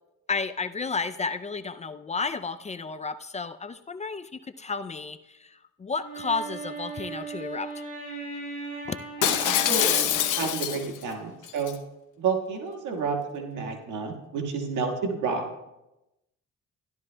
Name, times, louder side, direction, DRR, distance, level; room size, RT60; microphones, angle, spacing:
voice 1, 0.3-7.8 8.9-9.0, left 4 dB, 25° left, 10 dB, 0.4 m, -32 dB
Wind instrument woodwind instrument, 6.0-10.7, right 4 dB, 30° right, 3.3 m, -38 dB
Shatter, 9.2-11.0 11.5-11.7, left 11 dB, 85° left, 0.8 m, -24 dB
voice 2, 9.2-11.7 12.2-15.6, right 5 dB, 85° right, 3 dB, 1.6 m, -30 dB
14.5 x 11.5 x 2.2 m, 0.95 s
cardioid pair, 90°, 30 cm